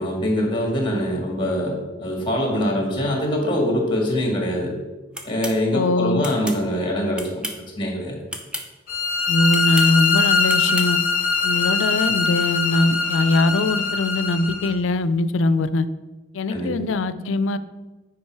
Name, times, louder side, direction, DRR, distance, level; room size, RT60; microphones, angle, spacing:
voice 1, 0.0-4.8 5.2-7.5 7.8-8.2 16.5-16.7, equal, 25° left, 1 dB, 1.9 m, -23 dB
sound 1, 5.1-5.6 6.2-6.6 7.1-7.7 8.3-8.7 9.5-9.9 10.5-10.9, equal, 5° right, 0.7 m, -32 dB
voice 2, 5.7-6.2 9.3-11.0 11.4-15.9 16.3-17.6, left 2 dB, 80° left, 13 dB, 0.4 m, -21 dB
sound 2, 8.9-14.7, left 5 dB, 45° left, 1.0 m, -22 dB
8.5 x 5.1 x 4.6 m, 1.2 s
head